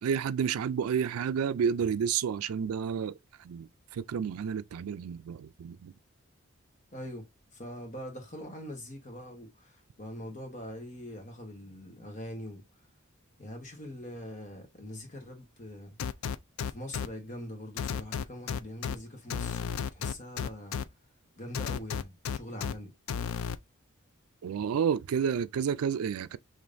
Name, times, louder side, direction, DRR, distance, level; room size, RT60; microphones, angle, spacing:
voice 1, 0.0-5.9 24.4-26.4, right 7 dB, 85° right, 0.4 m, -30 dB
voice 2, 6.9-7.2 7.5-12.6 13.4-16.0 16.7-20.8 21.4-22.9, left 1 dB, 35° left, 1.3 m, -43 dB
sound 1, 16.0-17.1 17.8-19.0 19.3-20.8 21.5-22.7 23.1-23.6, left 7 dB, 75° left, 0.4 m, -32 dB
5.1 x 3.1 x 2.6 m
head